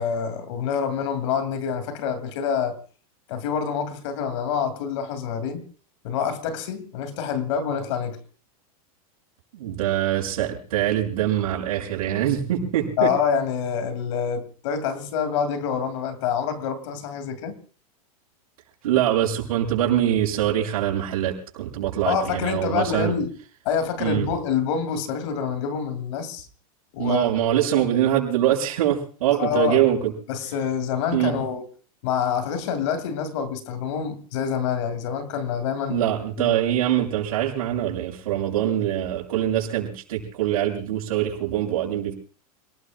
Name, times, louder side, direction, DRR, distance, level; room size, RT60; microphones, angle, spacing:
voice 1, 0.0-2.8 3.3-5.6 6.0-8.2 13.0-17.6 22.1-23.3 23.6-26.5 26.9-27.3 29.4-29.8 30.3-31.7 32.0-36.0 36.4-36.5, left 7 dB, 55° left, 2.6 m, -26 dB
voice 2, 9.5-13.1 18.8-23.1 24.0-24.3 27.0-30.1 31.1-31.4 35.9-42.1, right 11 dB, 70° right, 6.6 m, -23 dB
28.5 x 19.5 x 2.4 m
supercardioid pair, 175°, 19 cm